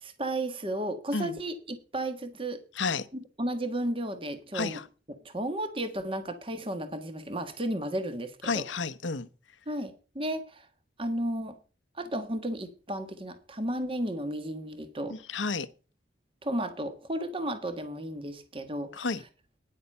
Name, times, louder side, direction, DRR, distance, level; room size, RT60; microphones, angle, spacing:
voice 1, 0.0-2.6 3.4-4.8 5.2-8.6 9.7-10.7 11.0-11.6 11.9-15.2 16.4-19.1, right 1 dB, 30° right, 1.4 m, -33 dB
voice 2, 4.5-4.8 8.4-9.3 15.1-15.7 18.9-19.2, left 4 dB, 85° left, 0.9 m, -31 dB
10.0 x 8.3 x 5.5 m
head